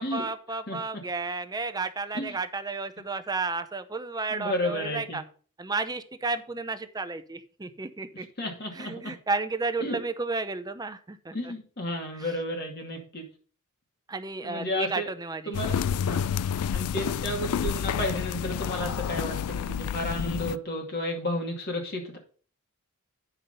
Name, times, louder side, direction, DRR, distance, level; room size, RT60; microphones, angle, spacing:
voice 1, 0.0-5.2 5.6-8.3 8.7-11.5 12.2-12.3 14.1-15.9, right 3 dB, 20° right, 10 dB, 0.7 m, -32 dB
voice 2, 4.3-5.2 8.1-9.1 9.8-10.0 11.3-13.3 14.4-15.1 15.5-15.7 16.0-16.3 16.7-22.2, left 1 dB, 45° left, 1 dB, 2.4 m, -32 dB
sound 1, 15.5-20.6, left 8 dB, 80° left, 0.3 m, -29 dB
9.4 x 5.8 x 5.3 m, 0.43 s
head